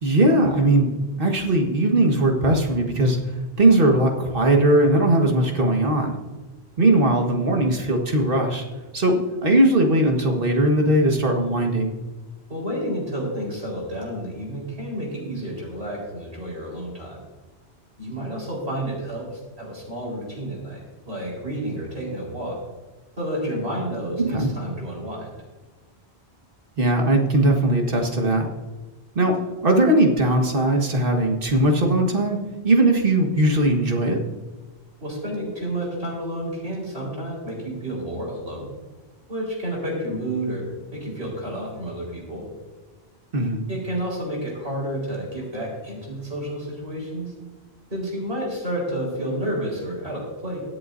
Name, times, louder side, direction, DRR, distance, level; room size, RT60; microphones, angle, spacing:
voice 1, 0.0-3.2 3.6-6.2 6.8-8.6 8.9-11.9 24.2-24.5 26.8-28.5 29.2-29.4 29.6-34.2 43.3-43.6, right 1 dB, 55° right, 2 dB, 1.8 m, -19 dB
voice 2, 12.5-17.2 18.0-22.6 23.2-25.4 35.0-38.7 39.3-40.6 40.9-42.4 43.7-47.3 47.9-50.6, right 1 dB, 75° right, -3 dB, 4.7 m, -30 dB
23.0 x 7.8 x 2.7 m, 1.2 s
omnidirectional pair, 1.1 m